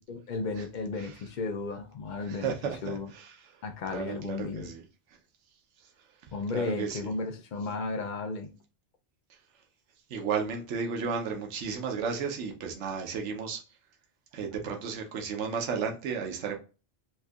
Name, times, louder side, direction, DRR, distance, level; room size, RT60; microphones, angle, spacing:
voice 1, 0.1-2.6 2.8-3.1 3.6-4.7 6.3-8.5, left 4 dB, 55° left, 0.6 m, -34 dB
voice 2, 2.3-3.3 3.9-4.8 6.5-7.0 10.1-13.6 14.3-16.6, right 6 dB, 85° right, 1.1 m, -33 dB
4.2 x 2.7 x 2.3 m
omnidirectional pair, 1.2 m